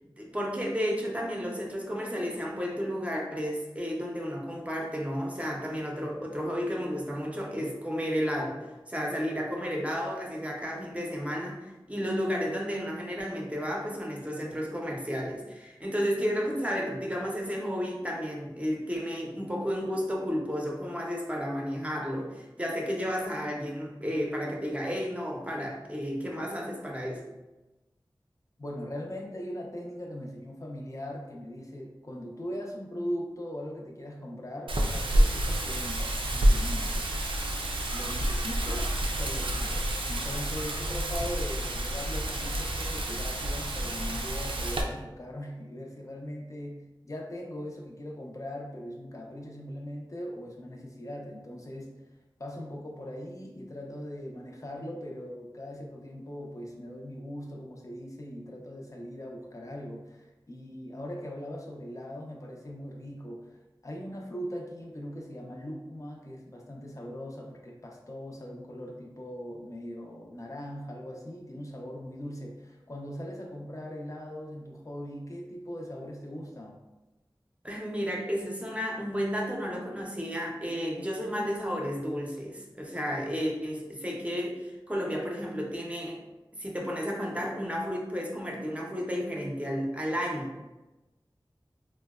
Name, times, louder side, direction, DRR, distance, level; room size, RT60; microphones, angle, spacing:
voice 1, 0.2-8.6 8.9-27.2 77.6-86.2 86.6-90.6, equal, 15° right, -1 dB, 0.6 m, -32 dB
voice 2, 28.6-37.5 37.9-38.9 39.2-52.0 52.4-63.6 63.8-76.8, equal, 40° left, 0 dB, 0.5 m, -40 dB
Wind, 34.7-44.8, right 1 dB, 85° right, 0.4 m, -28 dB
3.8 x 2.1 x 2.3 m, 1.1 s
wide cardioid pair, 45°, 9 cm